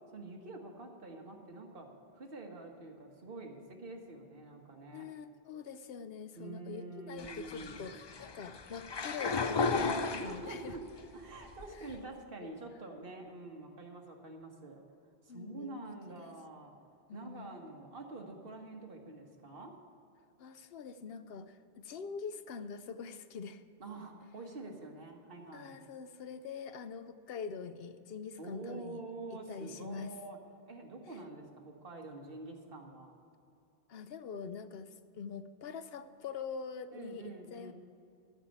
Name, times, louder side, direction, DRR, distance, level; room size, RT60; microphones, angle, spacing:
voice 1, 0.1-1.9 2.1-5.0 6.3-7.8 9.8-10.8 11.1-14.8 15.3-16.7 17.1-19.7 23.8-25.8 28.4-30.4 30.7-33.1 36.9-37.7, right 2 dB, 60° right, 1 dB, 1.6 m, -46 dB
voice 2, 4.9-10.8 11.7-12.0 12.4-12.5 15.3-16.3 17.1-17.5 20.4-23.6 25.5-29.0 29.3-30.1 33.9-37.7, left 6 dB, 70° left, 11 dB, 0.8 m, -44 dB
sound 1, 7.2-10.9 11.3-12.0, left 4 dB, 45° left, 0.3 m, -35 dB
12.5 x 5.5 x 9.1 m, 2.6 s
omnidirectional pair, 1.1 m